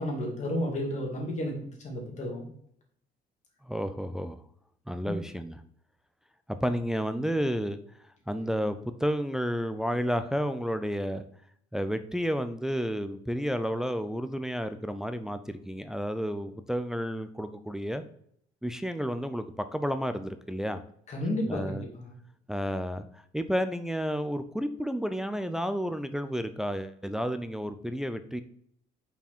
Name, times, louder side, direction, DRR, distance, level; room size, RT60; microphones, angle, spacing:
voice 1, 0.0-2.5 5.0-5.2 21.1-22.1, left 1 dB, 45° left, 0 dB, 2.5 m, -32 dB
voice 2, 3.7-4.4 4.9-5.6 6.6-7.8 8.3-11.2 11.7-18.0 18.6-20.8 21.5-21.8 22.5-23.1 23.3-28.4, equal, 5° right, 9 dB, 0.4 m, -31 dB
5.7 x 4.6 x 4.4 m, 0.66 s
cardioid pair, 110°, 17 cm